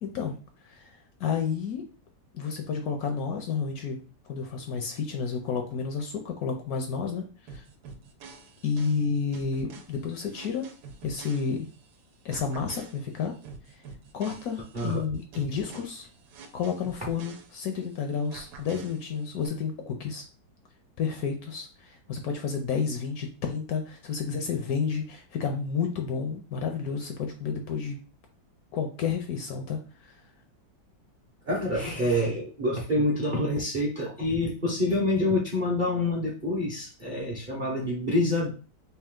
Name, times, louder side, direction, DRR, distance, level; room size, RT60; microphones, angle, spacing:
voice 1, 0.0-0.4 0.6-1.8 2.3-4.0 4.2-7.6 8.6-10.7 11.0-11.7 12.2-13.3 13.7-13.8 14.1-16.1 16.5-20.2 21.0-28.0 28.7-30.2, left 6 dB, 70° left, 4 dB, 0.9 m, -31 dB
sound 1, 7.5-11.9 12.3-17.9 18.3-19.5, right 5 dB, 75° right, 1.1 m, -47 dB
voice 2, 14.7-15.0 31.5-38.5, left 1 dB, 45° right, -5 dB, 0.6 m, -27 dB
3.4 x 2.8 x 3.6 m, 0.36 s
omnidirectional pair, 1.9 m